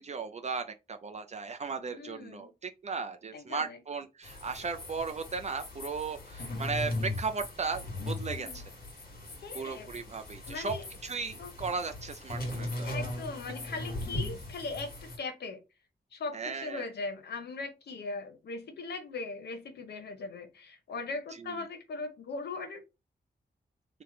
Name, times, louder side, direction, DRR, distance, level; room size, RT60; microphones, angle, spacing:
voice 1, 0.0-8.7 9.5-10.7 11.0-13.0 16.3-16.9 21.4-21.7, right 5 dB, 45° right, 0.4 m, -36 dB
voice 2, 1.8-2.5 3.3-3.8 8.3-8.6 9.4-9.9 10.5-10.8 11.4-11.5 12.8-15.6 16.1-22.8, left 3 dB, 85° left, 0.7 m, -39 dB
sound 1, 4.2-15.2, left 1 dB, 65° left, 1.3 m, -39 dB
2.9 x 2.1 x 3.7 m
wide cardioid pair, 100°, 17 cm